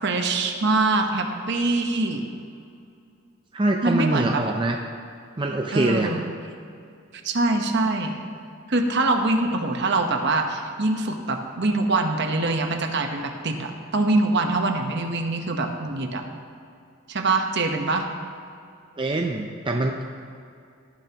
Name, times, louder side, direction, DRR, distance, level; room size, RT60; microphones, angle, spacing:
voice 1, 0.0-2.2 3.8-4.4 5.7-6.2 7.2-8.1 8.7-16.2 17.1-18.1, right 2 dB, 55° right, 4 dB, 1.0 m, -24 dB
voice 2, 3.5-4.8 5.4-6.1 19.0-20.1, right 2 dB, 20° right, 2 dB, 0.5 m, -24 dB
18.0 x 10.5 x 2.9 m, 2.5 s
head